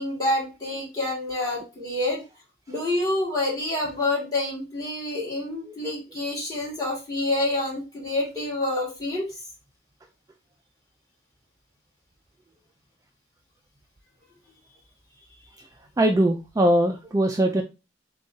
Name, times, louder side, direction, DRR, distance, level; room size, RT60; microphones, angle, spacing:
voice 1, 0.0-2.2 2.7-9.4, left 2 dB, 20° left, -5 dB, 2.0 m, -27 dB
voice 2, 16.0-17.6, right 1 dB, 20° right, 4 dB, 0.3 m, -21 dB
6.3 x 2.3 x 2.7 m, 0.28 s
head